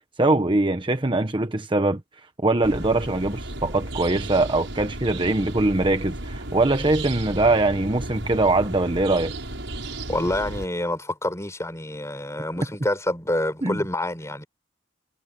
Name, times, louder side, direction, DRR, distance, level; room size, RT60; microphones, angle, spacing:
voice 1, 0.2-2.0 2.4-9.3 13.6-13.8, right 2 dB, 25° right, 1.1 m, -22 dB
sound 1, 2.6-10.7, right 1 dB, 80° right, 7.3 m, -34 dB
voice 2, 10.1-14.5, left 1 dB, 15° left, 4.8 m, -27 dB
head